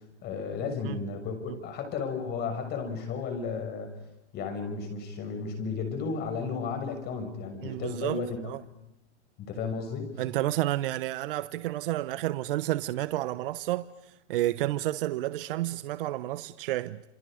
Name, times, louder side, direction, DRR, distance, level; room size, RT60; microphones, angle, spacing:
voice 1, 0.2-3.9 4.3-8.4 9.4-10.2, left 5 dB, 30° left, 6.3 m, -33 dB
voice 2, 7.6-8.6 10.2-13.9 14.3-17.0, right 15 dB, 50° right, 1.0 m, -30 dB
28.5 x 28.5 x 5.1 m
hypercardioid pair, 145°, 34 cm